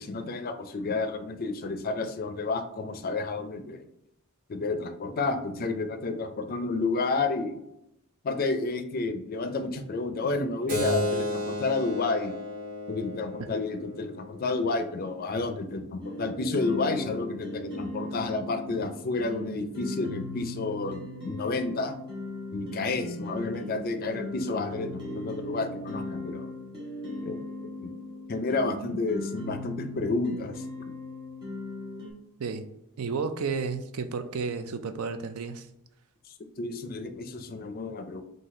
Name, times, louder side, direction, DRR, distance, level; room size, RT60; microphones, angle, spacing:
voice 1, 0.0-3.9 4.5-7.6 8.2-12.3 12.9-22.0 22.5-26.5 27.2-27.5 27.8-27.9 28.3-30.6 36.6-38.2, left 3 dB, 40° left, 8 dB, 0.4 m, -30 dB
Keyboard (musical), 10.7-15.8, left 1 dB, 40° right, 1.1 m, -34 dB
sound 1, 16.0-32.1, left 1 dB, 20° right, 1.4 m, -38 dB
voice 2, 33.0-35.7, right 5 dB, 80° right, 9 dB, 0.4 m, -32 dB
4.0 x 2.6 x 4.1 m, 0.83 s
head